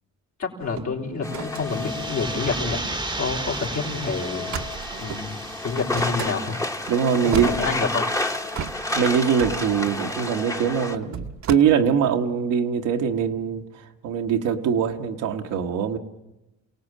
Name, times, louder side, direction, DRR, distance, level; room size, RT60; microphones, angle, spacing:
voice 1, 0.4-2.8 3.2-4.5 5.0-5.4 5.6-6.6 7.2-8.1, left 4 dB, 65° left, 0 dB, 3.7 m, -28 dB
sound 1, 0.6-3.0 3.4-3.6 3.8-4.0 4.5-5.3 5.9-6.4 6.9-7.0 7.2-8.1 8.5-11.6, right 8 dB, 65° right, 1.1 m, -35 dB
sound 2, 1.2-11.0, left 2 dB, 10° left, 1.1 m, -31 dB
sound 3, 1.4-7.1, right 2 dB, 15° right, 1.0 m, -34 dB
voice 2, 6.9-7.5 8.9-13.6 14.0-16.0, right 7 dB, 90° right, 4 dB, 1.4 m, -22 dB
28.0 x 17.5 x 7.4 m, 0.95 s
cardioid pair, 90°, 30 cm